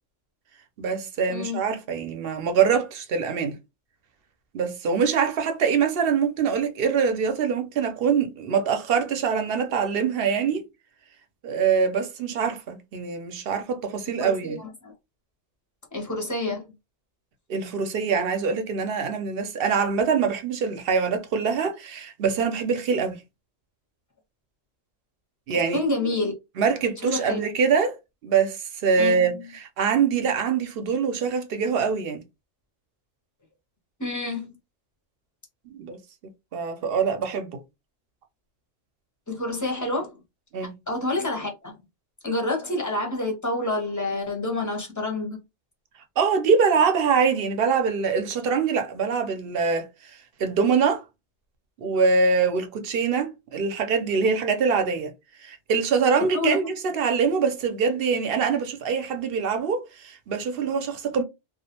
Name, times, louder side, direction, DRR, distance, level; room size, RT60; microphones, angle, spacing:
voice 1, 0.8-3.6 4.5-10.6 11.4-14.6 17.5-23.2 25.5-25.8 26.6-28.0 28.2-32.2 35.7-36.0 36.5-37.6 40.5-40.7 46.2-49.9 50.4-51.0 51.8-55.1 55.4-61.2, right 5 dB, 60° right, 0.7 m, -24 dB
voice 2, 1.3-1.6 14.2-14.9 15.9-16.7 25.5-26.3 27.1-27.4 29.0-29.5 34.0-34.6 39.3-40.1 40.6-41.8 42.2-45.4 56.3-56.6, left 2 dB, 20° left, 0.5 m, -28 dB
2.3 x 2.1 x 2.8 m
omnidirectional pair, 1.2 m